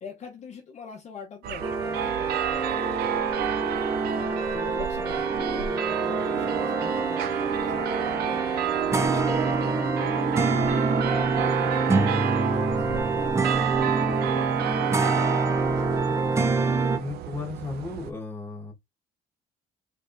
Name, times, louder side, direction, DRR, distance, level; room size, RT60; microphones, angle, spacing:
voice 1, 0.0-3.1 4.5-8.6 9.0-10.6 11.0-16.6, left 6 dB, 40° left, 0.8 m, -43 dB
sound 1, 1.4-18.1, right 10 dB, 70° right, 0.4 m, -31 dB
sound 2, 1.6-17.0, right 3 dB, 15° right, 0.5 m, -26 dB
voice 2, 16.9-18.7, left 3 dB, 15° left, 1.4 m, -35 dB
3.4 x 3.4 x 2.6 m
cardioid pair, 110°, 17 cm